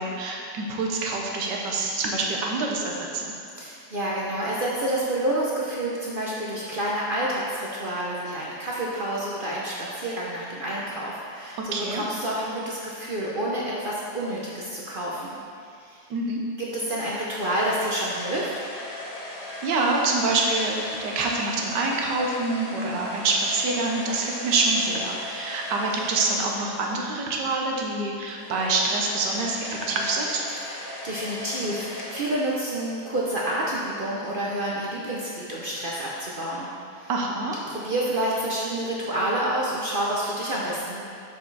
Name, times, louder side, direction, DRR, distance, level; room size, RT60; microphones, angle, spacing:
voice 1, 0.0-3.3 11.7-12.0 16.1-16.4 19.3-30.4 37.1-37.6, right 3 dB, 85° right, 0 dB, 1.5 m, -26 dB
voice 2, 3.6-15.4 15.8-16.0 16.6-18.5 30.6-36.7 37.0-37.1 37.7-41.0, right 1 dB, 55° right, -5 dB, 0.5 m, -28 dB
sound 1, 17.1-27.2 28.3-33.0, left 2 dB, 70° left, 1.5 m, -39 dB
6.8 x 5.0 x 4.0 m, 2.4 s
omnidirectional pair, 1.9 m